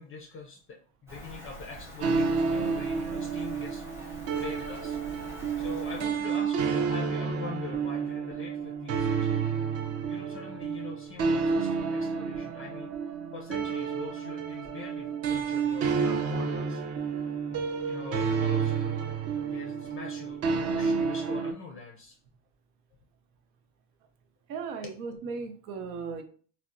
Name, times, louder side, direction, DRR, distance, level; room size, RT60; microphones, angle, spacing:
voice 1, 0.0-5.0 5.6-9.4 10.1-12.9 13.3-16.8 17.5-17.6 17.9-19.0 19.4-20.4 20.7-22.2 24.8-24.9, left 4 dB, 30° left, 1 dB, 0.3 m, -43 dB
Rain, 1.1-6.1, equal, 5° right, 0.7 m, -45 dB
sound 1, 2.0-21.5, right 5 dB, 35° right, 0.4 m, -30 dB
voice 2, 24.5-26.2, right 5 dB, 80° right, 7 dB, 0.7 m, -36 dB
3.3 x 2.1 x 2.5 m, 0.44 s
supercardioid pair, 110°, 45 cm